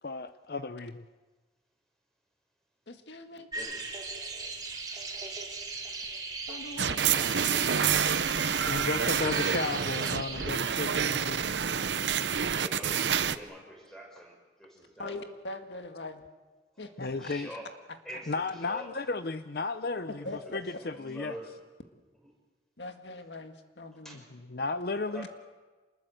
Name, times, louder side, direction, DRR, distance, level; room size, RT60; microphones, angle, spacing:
voice 1, 0.0-1.0 8.2-8.4 8.6-11.5 17.0-17.5 18.3-20.2 20.5-21.3 24.5-25.3, left 3 dB, 60° left, 11 dB, 0.7 m, -34 dB
voice 2, 2.9-3.5 6.5-7.3 15.0-16.2 16.8-17.3 20.2-20.6 22.8-24.2, left 2 dB, 80° left, 6 dB, 1.9 m, -42 dB
sound 1, 3.5-10.5, right 3 dB, 20° right, 4.3 m, -38 dB
sound 2, 6.8-13.4, right 7 dB, 80° right, 0.8 m, -28 dB
voice 3, 12.5-15.2 16.7-16.8 17.1-17.7 18.0-19.0 20.2-20.5 20.8-21.6 24.0-24.3 25.1-25.3, equal, 5° left, 1 dB, 5.8 m, -45 dB
27.0 x 20.5 x 7.7 m, 1.3 s
head